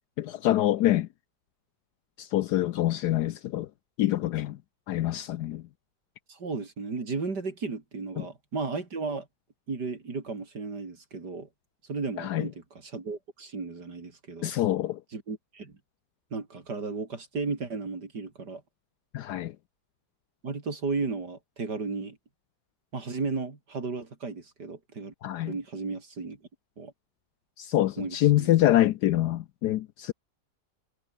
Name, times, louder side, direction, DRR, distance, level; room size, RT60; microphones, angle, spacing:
voice 1, 0.2-1.1 2.2-3.7 4.0-4.6 4.9-5.6 8.2-8.3 12.2-12.5 14.4-15.0 19.1-19.5 25.2-25.5 27.6-30.1, left 14 dB, 75° left, 1.2 m, -25 dB
voice 2, 6.3-9.3 9.7-11.5 11.9-14.5 15.1-15.7 16.3-18.6 20.4-22.2 22.9-25.1 25.5-26.4 26.8-26.9 28.0-28.5, right 4 dB, 70° right, 3.9 m, -34 dB
omnidirectional pair, 1.9 m